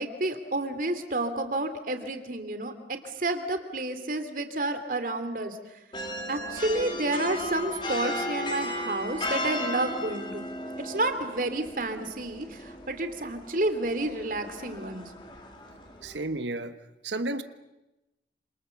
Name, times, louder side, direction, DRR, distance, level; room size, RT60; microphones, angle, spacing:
voice 1, 0.0-5.6 6.3-10.4 10.8-15.1, right 2 dB, 50° right, 8 dB, 2.7 m, -30 dB
sound 1, 5.9-16.2, left 1 dB, 25° left, 3.2 m, -36 dB
voice 2, 16.0-16.8 17.0-17.4, right 2 dB, 90° right, 10 dB, 1.3 m, -32 dB
28.0 x 27.5 x 7.1 m, 0.98 s
head